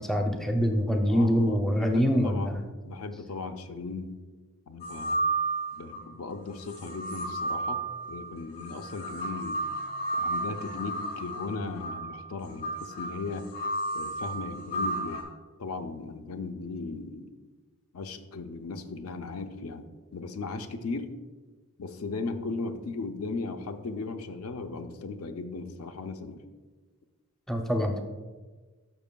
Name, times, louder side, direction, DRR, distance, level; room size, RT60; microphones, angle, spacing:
voice 1, 0.0-2.6 27.5-28.0, equal, ahead, 2 dB, 0.5 m, -25 dB
voice 2, 1.1-2.6 2.8-4.2 4.7-5.2 5.7-7.8 8.1-9.6 10.1-13.5 13.9-15.2 15.6-17.3 17.9-19.9 20.1-21.1 21.8-26.4, left 3 dB, 80° left, 7 dB, 0.5 m, -37 dB
sound 1, 4.8-6.1 6.6-15.2, right 2 dB, 50° left, 2.1 m, -33 dB
12.5 x 5.8 x 2.3 m, 1.3 s
head